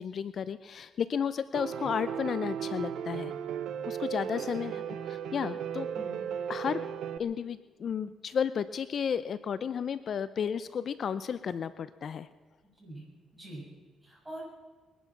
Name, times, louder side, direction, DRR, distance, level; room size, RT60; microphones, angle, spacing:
voice 1, 0.0-3.3 3.9-4.8 5.1-5.9 6.5-6.9 7.2-12.3, left 7 dB, 55° left, 14 dB, 0.6 m, -33 dB
Piano, 1.5-7.2, right 8 dB, 75° right, 0.8 m, -36 dB
voice 2, 4.3-4.8 5.9-6.2 12.6-13.0 13.3-13.6 14.0-14.4, right 1 dB, 15° right, -2 dB, 6.9 m, -45 dB
22.0 x 11.0 x 5.9 m, 1.4 s
cardioid pair, 90°, 0 cm